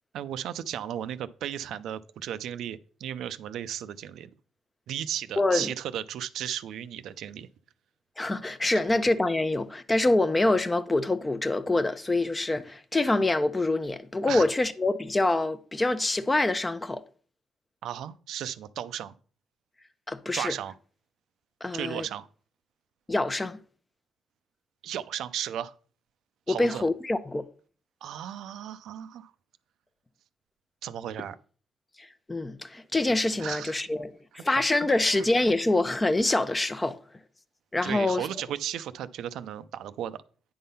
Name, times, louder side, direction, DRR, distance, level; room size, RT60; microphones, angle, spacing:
voice 1, 0.1-4.3 4.9-7.5 8.7-8.8 14.3-14.5 17.8-19.1 20.3-20.7 21.7-22.3 24.8-25.7 26.5-26.8 28.0-29.3 30.8-31.4 33.4-33.7 34.5-34.6 35.0-35.2 37.8-40.2, right 10 dB, 80° right, 0.5 m, -35 dB
voice 2, 5.4-5.7 8.2-17.0 20.1-20.5 21.6-22.1 23.1-23.6 26.5-27.5 32.0-37.0 37.7-38.3, left 2 dB, 20° left, 0.7 m, -26 dB
9.4 x 3.7 x 5.5 m
cardioid pair, 90°, 0 cm